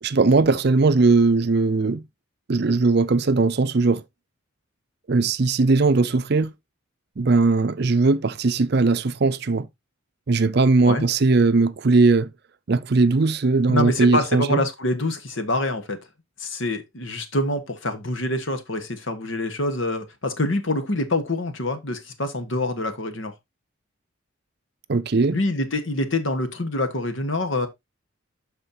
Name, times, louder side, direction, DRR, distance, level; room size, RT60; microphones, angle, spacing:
voice 1, 0.0-2.0 2.5-4.0 5.1-6.5 7.2-9.7 10.3-12.3 12.7-14.6 24.9-25.4, right 3 dB, 50° right, 0.5 m, -19 dB
voice 2, 13.7-16.0 16.4-23.3 25.3-27.7, left 1 dB, 65° left, 1.4 m, -26 dB
12.5 x 4.3 x 2.8 m
head